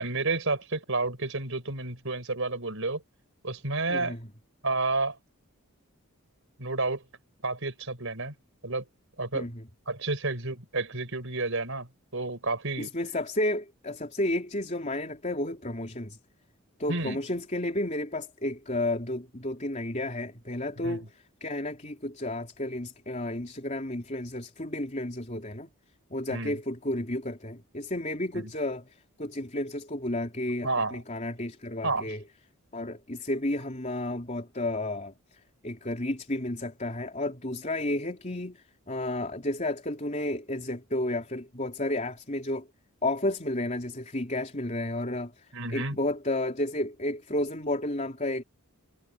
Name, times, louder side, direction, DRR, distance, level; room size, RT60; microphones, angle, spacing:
voice 1, 0.0-3.0 3.4-4.2 4.6-5.2 6.6-7.0 7.4-8.3 8.6-8.8 9.2-9.5 9.9-12.9 16.9-17.2 20.8-21.0 26.3-26.6 28.3-28.4 30.6-31.0 31.8-32.1 45.5-46.0, right 3 dB, 60° right, 5.6 m, -30 dB
voice 2, 3.9-4.3 9.3-9.6 12.8-16.2 16.8-21.0 21.4-25.7 26.1-32.2 32.7-42.7 43.0-48.4, left 1 dB, 30° left, 3.8 m, -32 dB
head